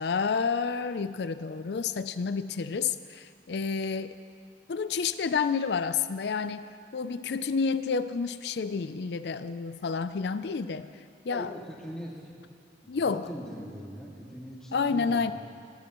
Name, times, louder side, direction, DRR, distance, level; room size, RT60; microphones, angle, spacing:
voice 1, 0.0-4.2 4.7-10.9 11.3-11.5 12.9-13.3 14.7-15.3, left 5 dB, 70° left, 12 dB, 0.4 m, -29 dB
voice 2, 11.3-12.5 12.8-15.3, equal, 5° left, -5 dB, 2.2 m, -41 dB
21.0 x 14.0 x 3.1 m, 2.3 s
head